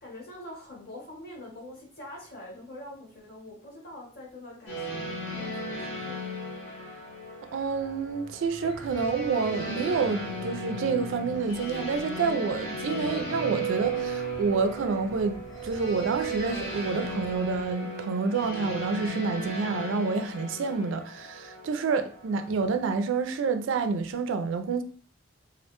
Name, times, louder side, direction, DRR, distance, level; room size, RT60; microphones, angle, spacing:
voice 1, 0.0-6.2, left 1 dB, 50° left, 1.0 m, -44 dB
sound 1, 4.7-22.7, right 2 dB, 70° left, 0.8 m, -35 dB
sound 2, 7.2-17.7, left 1 dB, 20° left, 0.5 m, -48 dB
voice 2, 7.5-24.8, right 4 dB, 75° right, 0.3 m, -28 dB
2.4 x 2.1 x 2.9 m
head